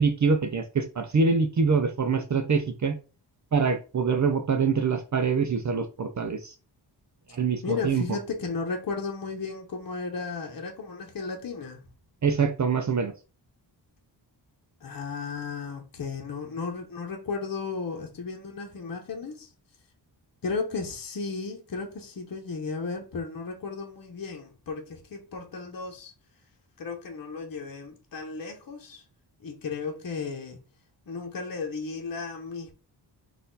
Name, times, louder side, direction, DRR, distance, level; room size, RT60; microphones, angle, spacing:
voice 1, 0.0-2.9 3.5-6.5 7.3-8.0 12.2-13.1, right 5 dB, 40° right, 0.5 m, -25 dB
voice 2, 7.6-11.8 14.8-19.5 20.4-26.1 26.8-29.0 29.4-30.6 31.1-32.7, left 4 dB, 50° left, 1.0 m, -34 dB
4.2 x 2.6 x 3.9 m
wide cardioid pair, 150°, 44 cm